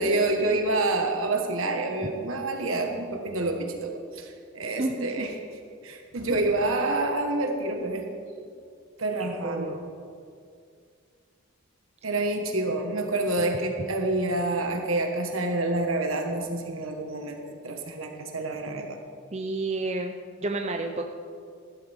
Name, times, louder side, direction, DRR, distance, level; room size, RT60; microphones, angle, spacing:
voice 1, 0.0-5.3 5.8-8.1 9.0-9.8 12.0-19.0, right 2 dB, 70° right, 3 dB, 1.6 m, -28 dB
voice 2, 9.2-9.7 19.3-21.0, right 2 dB, 30° right, 3 dB, 0.6 m, -30 dB
15.0 x 13.0 x 3.7 m, 2.3 s
head